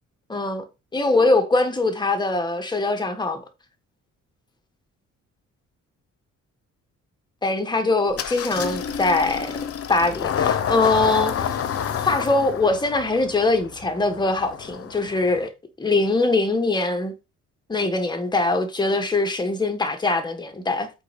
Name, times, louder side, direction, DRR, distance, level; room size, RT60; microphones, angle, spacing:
voice 1, 0.3-0.6 0.9-3.4 7.4-9.6 9.9-11.6 12.0-15.5 15.8-17.1 17.7-20.9, left 2 dB, 15° left, 1.5 m, -22 dB
Engine starting, 8.1-15.5, left 8 dB, 50° left, 0.9 m, -29 dB
8.1 x 4.4 x 5.2 m
wide cardioid pair, 175°, 30 cm